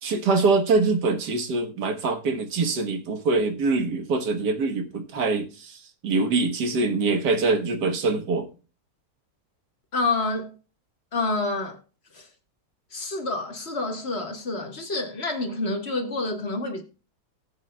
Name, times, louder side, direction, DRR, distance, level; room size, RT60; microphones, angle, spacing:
voice 1, 0.0-5.8 6.0-8.5, right 3 dB, 80° right, 1.8 m, -24 dB
voice 2, 9.9-10.5 11.1-11.8 12.1-12.3 12.9-16.8, left 3 dB, 40° left, 1.5 m, -28 dB
19.0 x 7.9 x 2.2 m
omnidirectional pair, 1.8 m